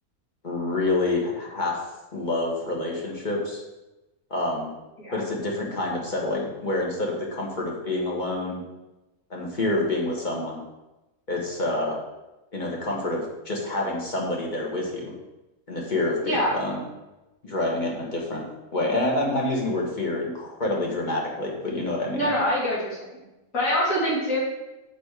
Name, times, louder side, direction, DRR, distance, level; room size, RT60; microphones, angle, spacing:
voice 1, 0.4-1.8 2.1-3.6 4.3-4.7 5.1-8.6 9.3-10.6 11.3-12.0 12.5-15.1 15.7-16.8 17.4-18.4 18.7-22.3, left 2 dB, 35° left, -2 dB, 1.6 m, -27 dB
voice 2, 16.2-16.6 22.1-23.2 23.5-24.4, equal, 65° left, -7 dB, 3.2 m, -25 dB
6.2 x 5.5 x 4.7 m, 1.0 s
omnidirectional pair, 1.5 m